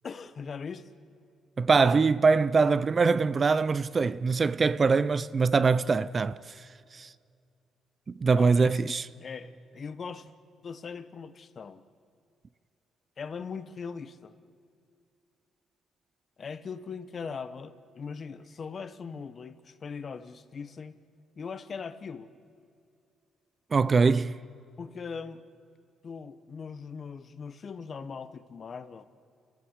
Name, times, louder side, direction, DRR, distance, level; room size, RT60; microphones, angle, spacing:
voice 1, 0.0-0.9 8.4-10.3 10.6-11.8 13.2-14.3 16.4-21.0 21.4-22.3 24.8-25.4 26.0-29.1, left 5 dB, 45° left, 1.1 m, -40 dB
voice 2, 1.6-6.7 6.9-7.1 8.1-9.1 23.7-24.4, right 4 dB, 35° right, 0.5 m, -23 dB
30.0 x 14.5 x 8.1 m
cardioid pair, 90°, 0 cm